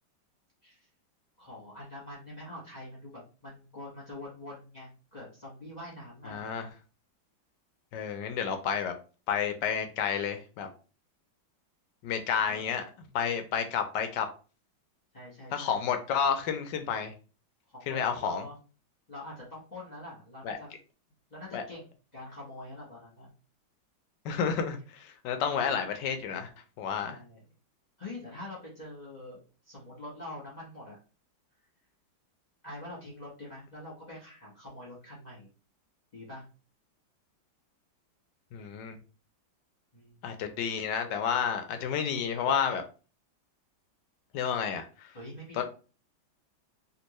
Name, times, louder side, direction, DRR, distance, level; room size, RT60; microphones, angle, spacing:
voice 1, 1.4-6.5 12.4-12.6 15.1-15.8 17.7-18.6 19.1-20.7 21.3-21.9 22.1-23.3 27.0-27.4 28.0-31.0 32.6-35.5 36.1-36.4 39.9-40.2 45.1-45.6, left 1 dB, 25° left, 1.1 m, -45 dB
voice 2, 6.3-6.7 7.9-8.9 9.3-10.7 12.0-12.8 13.1-14.3 15.5-17.1 17.9-18.4 20.4-20.6 21.5-21.6 24.2-26.5 26.8-27.2 38.5-39.0 40.2-42.8 44.3-45.1 45.5-45.6, left 7 dB, 70° left, 1.1 m, -30 dB
3.5 x 2.8 x 3.0 m
omnidirectional pair, 2.2 m